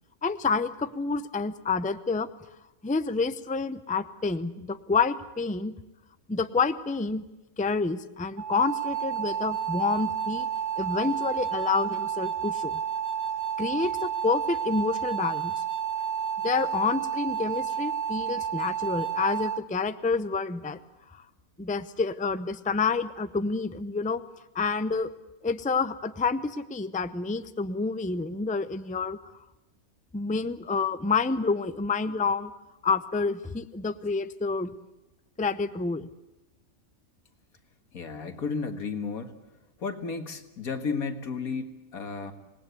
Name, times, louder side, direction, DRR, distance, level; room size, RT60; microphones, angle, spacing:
voice 1, 0.2-2.3 2.8-5.7 6.3-7.2 7.6-10.5 10.8-12.8 13.6-15.5 16.4-20.8 21.1-21.2 21.6-24.2 24.5-25.1 25.4-29.2 30.1-32.5 32.8-34.7 35.4-36.1, left 4 dB, 10° left, 12 dB, 0.5 m, -28 dB
sound 1, 8.4-19.6, right 8 dB, 50° right, 1.3 m, -30 dB
voice 2, 37.9-39.3 39.8-42.3, left 5 dB, 85° left, 7 dB, 2.3 m, -33 dB
26.5 x 19.5 x 8.2 m, 1.0 s
omnidirectional pair, 1.5 m